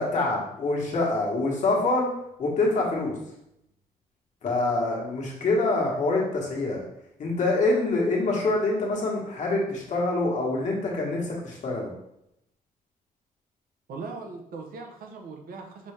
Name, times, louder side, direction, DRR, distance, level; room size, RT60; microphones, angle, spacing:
voice 1, 0.0-2.1 2.4-3.1 4.4-6.8 7.2-11.9, left 2 dB, 55° left, -2 dB, 1.2 m, -25 dB
voice 2, 13.9-15.9, right 4 dB, 80° right, 3 dB, 0.7 m, -39 dB
5.2 x 2.7 x 3.3 m, 0.81 s
wide cardioid pair, 145°, 15 cm